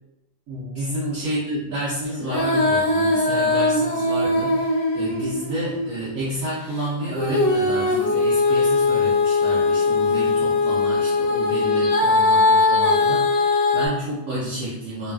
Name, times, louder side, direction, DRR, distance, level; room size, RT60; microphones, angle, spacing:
voice 1, 0.5-15.1, right 1 dB, 75° right, -8 dB, 0.7 m, -30 dB
Female singing, 2.2-6.0 7.2-13.9, left 3 dB, 75° left, 1.0 m, -20 dB
3.2 x 2.2 x 2.2 m, 0.86 s
omnidirectional pair, 2.2 m